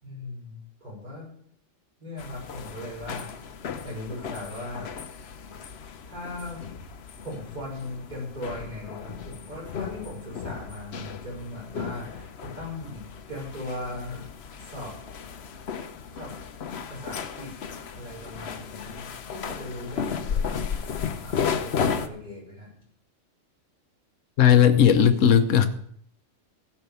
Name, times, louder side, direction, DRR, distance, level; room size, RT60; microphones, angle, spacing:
voice 1, 0.0-1.3 2.0-3.3 3.8-4.9 6.1-6.6 7.2-14.3 14.6-14.9 16.1-16.3 16.9-17.5 17.9-20.6 21.2-22.7, left 1 dB, 35° right, -4 dB, 5.7 m, -38 dB
sound 1, 2.2-22.1, left 6 dB, 60° left, 1.0 m, -34 dB
voice 2, 24.4-25.7, left 9 dB, 80° left, 8 dB, 1.2 m, -17 dB
15.5 x 5.9 x 6.9 m, 0.67 s
omnidirectional pair, 1.3 m